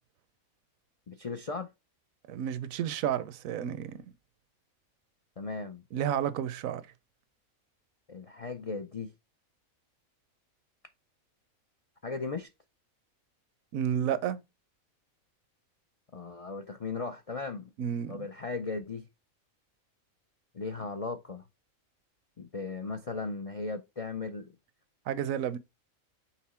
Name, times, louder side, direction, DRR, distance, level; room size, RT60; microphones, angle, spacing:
voice 1, 1.1-1.7 5.4-5.8 8.1-9.1 12.0-12.5 16.1-17.7 18.1-19.1 20.5-21.5 22.4-24.5, left 4 dB, 60° left, 0.3 m, -37 dB
voice 2, 2.3-4.0 5.9-6.8 13.7-14.4 17.8-18.3 25.1-25.6, right 9 dB, 75° right, 1.0 m, -31 dB
5.8 x 3.9 x 4.3 m
omnidirectional pair, 1.4 m